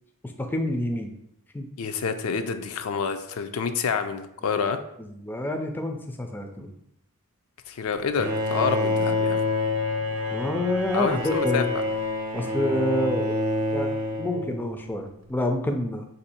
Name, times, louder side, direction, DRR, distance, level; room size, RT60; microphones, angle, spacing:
voice 1, 0.2-1.1 1.5-1.7 4.4-4.6 5.0-6.7 10.3-11.7 12.3-13.4 13.7-16.2, left 1 dB, 10° left, 3 dB, 0.3 m, -28 dB
voice 2, 1.8-4.8 7.7-9.4 10.9-11.6, left 6 dB, 75° left, 8 dB, 0.4 m, -28 dB
Bowed string instrument, 8.2-15.0, left 2 dB, 65° right, 0.7 m, -27 dB
4.4 x 2.6 x 4.2 m, 0.77 s
head